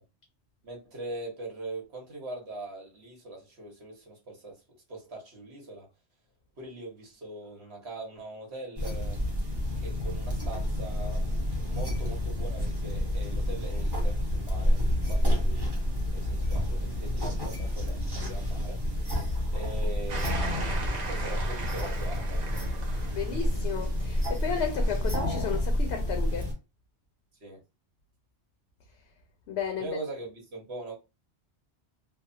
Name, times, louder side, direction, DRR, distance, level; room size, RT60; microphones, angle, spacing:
voice 1, 0.6-4.6 4.9-5.9 6.6-9.2 9.8-15.6 16.1-19.2 19.5-22.6 27.4-27.6 29.8-30.9, right 2 dB, 75° right, 1.5 m, -42 dB
sound 1, 8.8-26.5, left 1 dB, 25° right, 1.0 m, -29 dB
sound 2, 20.1-25.2, right 4 dB, 45° right, 0.7 m, -40 dB
voice 2, 23.1-26.5 29.5-30.0, left 7 dB, 80° left, 0.9 m, -33 dB
3.4 x 2.1 x 2.6 m
omnidirectional pair, 1.1 m